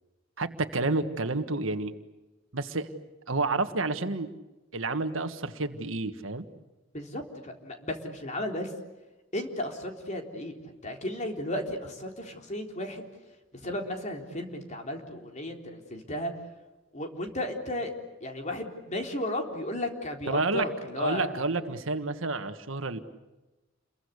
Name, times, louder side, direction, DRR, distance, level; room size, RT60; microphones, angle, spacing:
voice 1, 0.4-1.9 2.5-2.9 3.3-4.3 4.7-6.5 20.3-20.7 21.0-23.0, right 3 dB, 85° right, 8 dB, 1.7 m, -29 dB
voice 2, 6.9-8.7 9.3-13.0 13.5-16.3 16.9-17.9 18.2-21.4, left 1 dB, 35° left, 3 dB, 3.8 m, -34 dB
29.5 x 22.5 x 8.4 m, 1.1 s
head